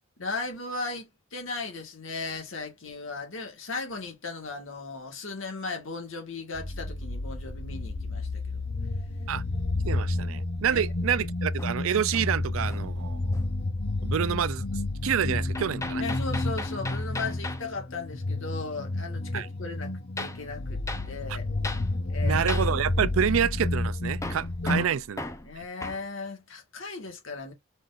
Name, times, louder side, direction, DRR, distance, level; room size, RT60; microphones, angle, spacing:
voice 1, 0.2-8.7 10.7-10.8 16.0-21.5 22.1-22.4 24.6-24.9 25.4-27.5, left 3 dB, 70° left, 1.7 m, -37 dB
sound 1, 6.5-24.9, left 2 dB, 50° left, 0.8 m, -30 dB
voice 2, 9.8-13.4 14.0-14.6 15.0-16.0 19.3-19.5 22.2-25.2 25.6-25.7, right 8 dB, 80° right, 0.4 m, -28 dB
Hammer, 11.6-13.0 13.3-13.7 15.5-17.7 20.2-20.4 20.9-21.1 21.6-21.9 22.5-22.7 24.2-26.1, left 2 dB, 15° left, 0.6 m, -38 dB
5.0 x 3.9 x 2.5 m
head